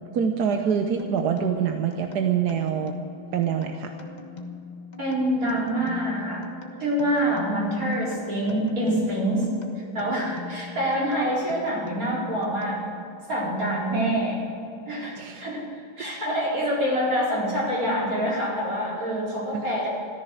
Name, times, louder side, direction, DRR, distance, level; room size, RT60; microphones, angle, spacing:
voice 1, 0.1-2.9 3.3-3.9 15.2-15.4 19.5-19.6, right 7 dB, 60° right, 5 dB, 1.2 m, -25 dB
sound 1, 1.0-13.2, left 3 dB, 25° left, 1.0 m, -41 dB
voice 2, 5.0-6.4 6.8-9.5 9.9-12.8 13.3-14.4 14.9-15.6 16.0-19.9, equal, 40° right, -5 dB, 4.8 m, -26 dB
14.5 x 14.0 x 6.5 m, 2.7 s
omnidirectional pair, 2.4 m